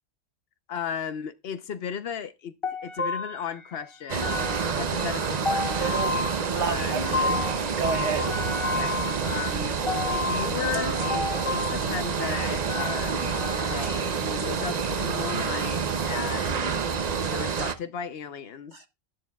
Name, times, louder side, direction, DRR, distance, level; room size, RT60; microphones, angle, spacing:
voice 1, 0.7-2.5 2.8-6.0 6.5-7.3 8.5-9.8 10.1-16.8 17.3-18.8, left 7 dB, 55° left, 0.9 m, -35 dB
sound 1, 2.6-13.9, left 3 dB, 25° left, 1.5 m, -32 dB
sound 2, 4.1-17.7, right 6 dB, 45° right, 0.6 m, -28 dB
voice 2, 5.9-8.3 18.7-18.9, right 6 dB, 65° right, 1.1 m, -31 dB
11.0 x 10.5 x 2.3 m
omnidirectional pair, 1.3 m